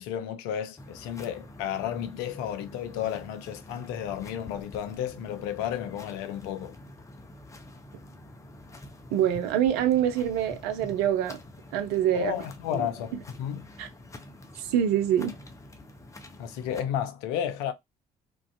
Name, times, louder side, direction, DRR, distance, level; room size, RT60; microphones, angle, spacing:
voice 1, 0.0-6.8 12.1-13.7 16.4-17.7, left 10 dB, 65° left, 0.4 m, -32 dB
sound 1, 0.8-16.8, left 1 dB, 15° left, 0.6 m, -47 dB
voice 2, 9.1-11.4 11.7-12.3 12.7-12.9 13.8-13.9 14.6-15.3, right 10 dB, 60° right, 0.4 m, -25 dB
2.4 x 2.3 x 2.2 m
figure-of-eight pair, 45°, 18 cm